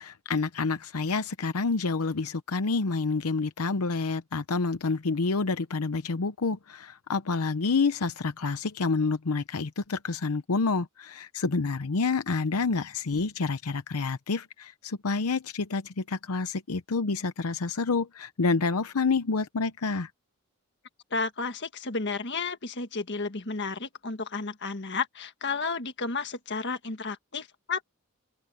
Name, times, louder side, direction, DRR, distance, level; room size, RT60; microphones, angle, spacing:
voice 1, 0.0-20.1, left 4 dB, 90° left, 0.8 m, -28 dB
voice 2, 21.1-28.0, left 4 dB, 55° left, 1.7 m, -32 dB
open air
head